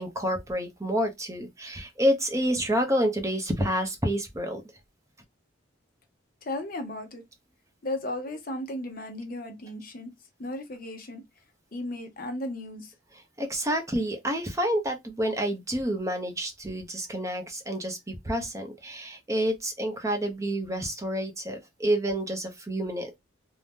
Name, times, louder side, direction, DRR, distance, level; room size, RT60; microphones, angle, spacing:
voice 1, 0.0-4.6 13.4-23.2, equal, 15° right, 0.6 m, -28 dB
voice 2, 6.4-7.2 7.8-10.1 10.4-11.2 11.7-12.9, left 1 dB, 45° left, 0.6 m, -35 dB
2.6 x 2.0 x 3.4 m
head